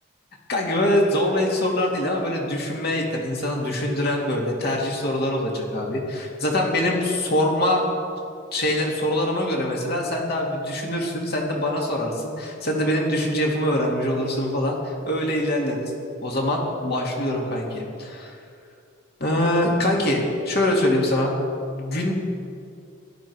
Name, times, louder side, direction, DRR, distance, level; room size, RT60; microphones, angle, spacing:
voice 1, 0.5-7.8 8.5-15.9 16.2-18.4 19.2-21.3 21.7-22.1, left 1 dB, 50° left, -1 dB, 2.4 m, -24 dB
17.0 x 12.0 x 4.7 m, 2.4 s
head